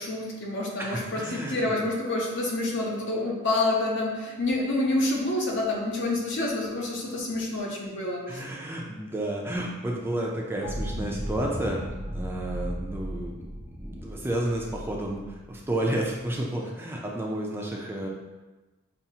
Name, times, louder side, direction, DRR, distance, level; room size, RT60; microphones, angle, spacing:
voice 1, 0.0-8.4, left 2 dB, 60° left, -2 dB, 0.8 m, -28 dB
voice 2, 0.8-1.9 8.3-11.8 12.1-18.1, right 1 dB, 10° right, -2 dB, 0.4 m, -31 dB
sound 1, 10.6-16.3, equal, 85° left, 0.9 m, -36 dB
5.5 x 2.4 x 2.8 m, 1.2 s
head